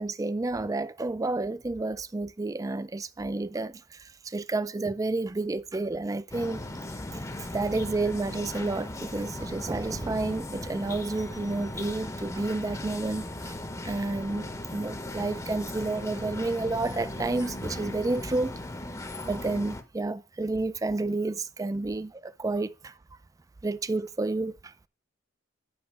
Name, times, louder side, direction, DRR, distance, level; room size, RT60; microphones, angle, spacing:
voice 1, 0.0-6.6 7.5-13.5 13.8-18.6 19.2-22.9 23.6-24.7, right 2 dB, 15° right, 0.3 m, -30 dB
sound 1, 6.3-19.8, left 1 dB, 15° left, 0.7 m, -38 dB
8.0 x 5.8 x 5.3 m
head